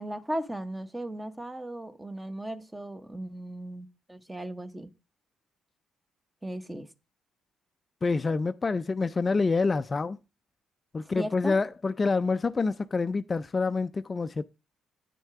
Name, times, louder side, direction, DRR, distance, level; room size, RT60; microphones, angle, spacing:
voice 1, 0.0-4.9 6.4-6.9 11.0-11.6, right 1 dB, 10° right, 1.0 m, -37 dB
voice 2, 8.0-10.2 10.9-14.4, left 4 dB, 30° left, 0.4 m, -27 dB
9.3 x 6.3 x 4.7 m
cardioid pair, 90°, 0 cm